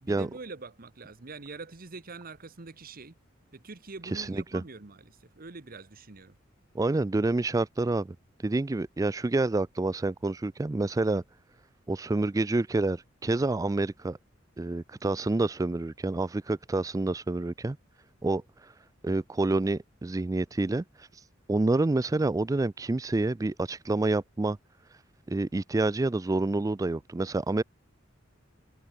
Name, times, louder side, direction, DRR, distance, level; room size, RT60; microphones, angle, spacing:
voice 1, 0.0-3.1 3.5-6.4, right 3 dB, 50° right, 1.2 m, -44 dB
voice 2, 4.1-4.6 6.7-8.2 8.4-11.2 11.9-14.2 14.6-17.8 18.2-18.4 19.0-20.8 21.5-24.6 25.3-27.6, right 2 dB, 15° right, 0.4 m, -28 dB
head